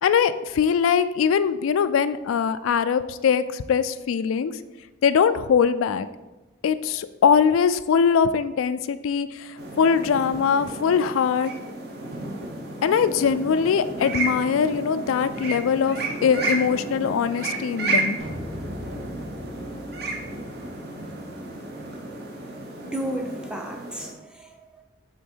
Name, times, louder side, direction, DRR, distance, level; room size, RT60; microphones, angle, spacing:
voice 1, 0.0-4.5 5.0-6.1 6.6-9.5 9.8-11.5 12.8-16.0 16.2-18.2, left 6 dB, 90° left, 13 dB, 0.3 m, -21 dB
sound 1, 9.6-24.1, right 2 dB, 50° right, 0.9 m, -32 dB
sound 2, 18.2-22.2, equal, 85° right, 1.5 m, -40 dB
voice 2, 22.8-24.8, right 1 dB, 5° right, 2 dB, 0.5 m, -33 dB
6.3 x 3.7 x 4.5 m, 1.1 s
head